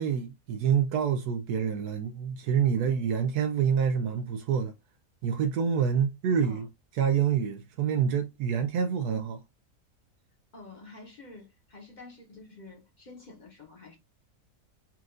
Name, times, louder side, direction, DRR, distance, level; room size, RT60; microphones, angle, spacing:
voice 1, 0.0-4.7 5.2-6.7 7.0-9.4, right 7 dB, 85° right, 1.1 m, -27 dB
voice 2, 10.5-14.0, left 3 dB, 35° left, 1.0 m, -49 dB
4.4 x 2.5 x 3.7 m
omnidirectional pair, 1.6 m